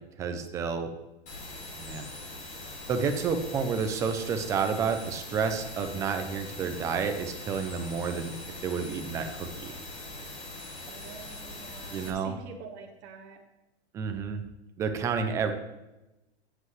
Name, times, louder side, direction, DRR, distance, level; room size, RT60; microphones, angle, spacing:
voice 1, 0.2-0.9 1.7-2.0 2.9-8.3 8.6-9.7 11.9-12.3 13.9-14.4 14.8-15.5, right 5 dB, 10° right, 7 dB, 0.4 m, -30 dB
sound 1, 1.3-12.1, left 2 dB, 20° left, 2.2 m, -42 dB
voice 2, 10.8-13.4, right 5 dB, 35° right, 0 dB, 1.6 m, -46 dB
15.5 x 7.8 x 3.1 m, 0.99 s
hypercardioid pair, 155°, 33 cm